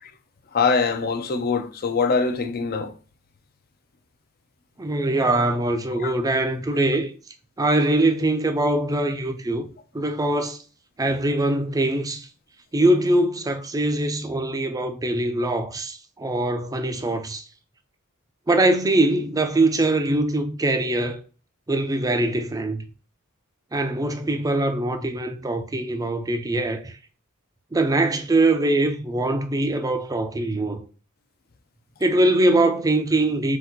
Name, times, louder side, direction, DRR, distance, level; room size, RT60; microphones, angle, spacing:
voice 1, 0.5-2.9 6.0-6.1, left 4 dB, 45° left, 0.5 m, -23 dB
voice 2, 4.8-7.1 7.6-9.7 9.9-10.6 11.0-12.3 12.7-17.4 18.5-21.2 21.7-22.8 23.7-26.9 27.7-30.8 32.0-33.6, right 2 dB, 15° right, 0.5 m, -22 dB
4.0 x 2.5 x 4.3 m
head